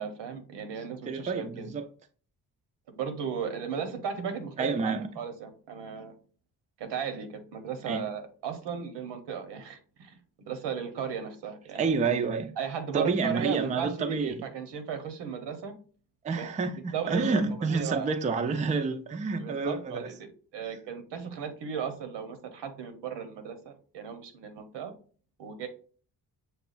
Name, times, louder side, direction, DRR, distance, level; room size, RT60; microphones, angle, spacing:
voice 1, 0.0-1.7 2.9-6.1 6.8-12.0 12.6-15.7 16.3-16.5 16.9-18.1 19.4-24.9 25.4-25.7, right 7 dB, 90° right, 0.9 m, -36 dB
voice 2, 1.1-1.9 4.6-5.1 7.9-8.1 11.7-12.5 12.9-14.4 16.2-20.1, right 4 dB, 20° right, 0.3 m, -29 dB
6.7 x 2.3 x 2.4 m
cardioid pair, 115°, 41 cm